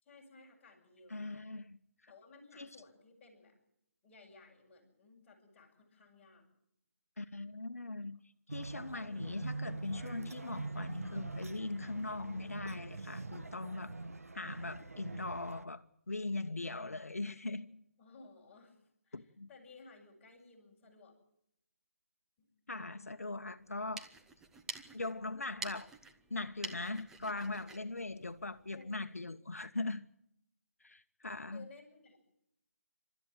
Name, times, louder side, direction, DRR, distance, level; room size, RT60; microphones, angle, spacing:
voice 1, 0.0-1.4 2.1-3.6 4.0-6.5 18.0-21.1 22.4-22.5 28.6-29.2 31.5-32.2, left 3 dB, 15° left, 6.9 m, -58 dB
voice 2, 1.1-1.8 2.0-2.1 2.6-2.7 7.2-8.2 8.5-14.0 14.3-17.8 19.1-19.5 22.7-24.1 24.9-25.9 26.3-30.1 30.8-31.7, left 2 dB, 75° left, 1.0 m, -40 dB
sound 1, 8.5-15.6, right 3 dB, 75° right, 1.4 m, -43 dB
sound 2, 23.7-29.0, right 3 dB, 5° right, 1.0 m, -49 dB
28.5 x 13.5 x 9.1 m
figure-of-eight pair, 150°, 8 cm